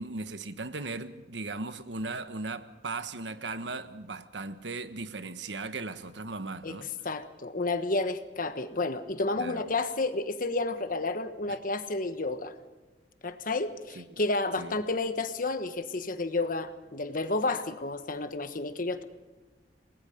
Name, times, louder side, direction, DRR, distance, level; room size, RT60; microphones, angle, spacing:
voice 1, 0.0-6.9 9.4-9.6 11.5-11.6 13.9-14.0 14.6-14.8, right 3 dB, 85° right, 1.4 m, -37 dB
voice 2, 7.0-12.5 13.2-19.0, left 2 dB, 50° left, 1.4 m, -31 dB
28.0 x 20.0 x 5.3 m
head